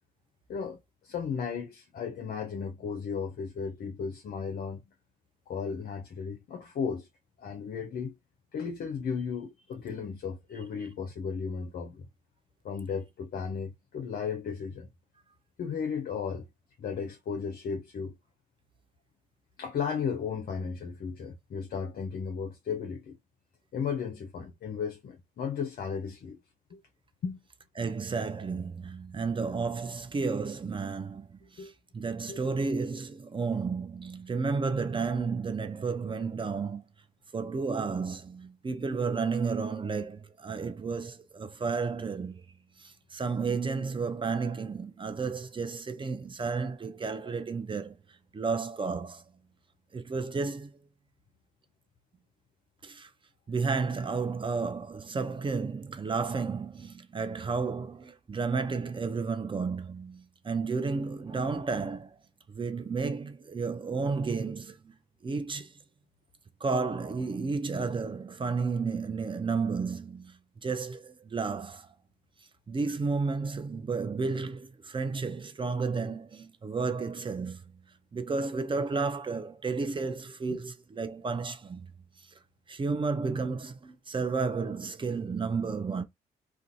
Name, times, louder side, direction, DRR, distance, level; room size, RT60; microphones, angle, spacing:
voice 1, 0.5-4.8 5.5-7.1 7.4-8.1 8.5-12.1 12.6-14.9 15.6-16.5 16.8-18.2 19.6-23.2 23.7-26.4 26.7-26.8 27.2-27.4 31.6-31.7 32.3-32.4 80.5-80.6, left 6 dB, 50° left, 0.5 m, -35 dB
voice 2, 27.8-36.8 37.3-42.4 42.8-47.9 48.3-49.2 49.9-50.7 52.8-53.1 53.5-62.1 62.5-64.9 65.2-65.7 66.6-71.9 72.7-77.6 78.1-81.9 82.7-86.0, right 4 dB, 25° right, 0.5 m, -32 dB
2.4 x 2.3 x 2.5 m
hypercardioid pair, 40°, 20 cm